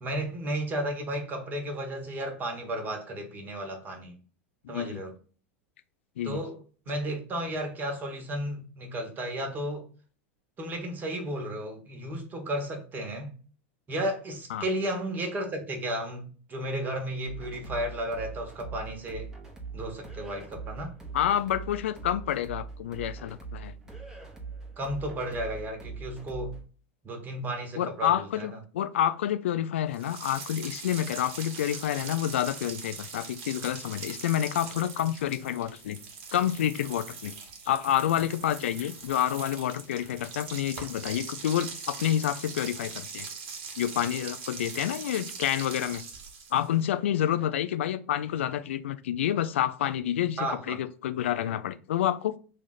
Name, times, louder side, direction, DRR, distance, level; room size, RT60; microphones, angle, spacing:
voice 1, 0.0-4.2 4.7-5.1 6.2-9.9 10.6-13.3 13.9-19.3 19.7-20.9 24.8-26.6 27.0-28.5 50.4-50.8, right 1 dB, 30° right, 1.2 m, -33 dB
voice 2, 4.6-5.0 6.2-6.4 14.5-14.7 21.1-23.8 27.8-36.0 36.3-37.3 37.6-43.3 43.8-46.0 46.5-52.4, left 11 dB, 80° left, 0.3 m, -28 dB
sound 1, 17.3-26.6, right 5 dB, 10° right, 0.9 m, -42 dB
sound 2, 29.9-46.8, right 5 dB, 60° right, 1.1 m, -41 dB
3.3 x 2.4 x 4.0 m
hypercardioid pair, 100°, 7 cm